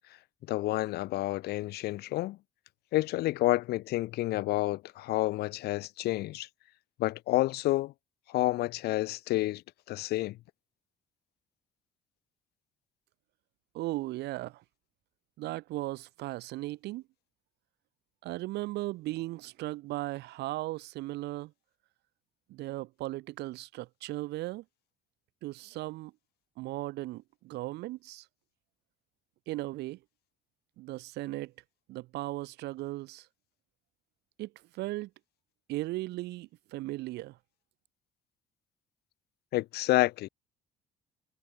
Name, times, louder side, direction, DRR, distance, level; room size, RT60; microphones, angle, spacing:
voice 1, 0.5-2.4 2.9-6.5 7.0-7.9 8.3-9.6 9.9-10.4 39.5-40.3, left 17 dB, 75° left, 0.8 m, -29 dB
voice 2, 13.7-14.6 15.4-17.0 18.2-21.5 22.5-24.6 25.4-26.1 26.6-28.2 29.5-30.0 30.8-31.5 31.9-33.3 34.4-35.1 35.7-37.4, right 18 dB, 80° right, 4.6 m, -37 dB
cardioid pair, 90°, 17 cm